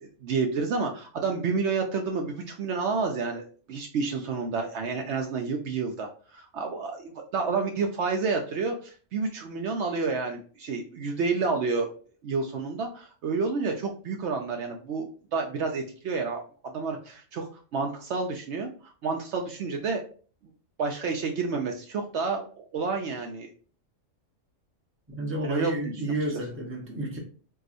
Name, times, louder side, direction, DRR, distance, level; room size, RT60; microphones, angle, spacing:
voice 1, 0.0-11.9 12.2-20.0 20.8-23.5 25.4-25.9, right 4 dB, 70° right, 0.8 m, -30 dB
voice 2, 25.1-27.2, right 1 dB, 10° right, 0.7 m, -31 dB
4.6 x 2.3 x 2.5 m
omnidirectional pair, 1.3 m